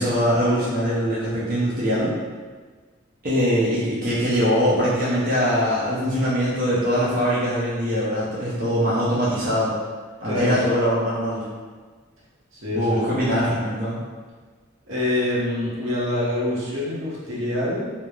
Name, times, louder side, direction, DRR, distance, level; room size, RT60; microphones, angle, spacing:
voice 1, 0.0-2.1 3.2-9.7 10.2-11.5 12.7-14.0, equal, 45° right, -8 dB, 0.5 m, -22 dB
voice 2, 10.2-10.8 12.5-13.2 14.9-17.9, left 1 dB, 85° right, -7 dB, 0.8 m, -26 dB
3.0 x 2.0 x 2.4 m, 1.4 s
head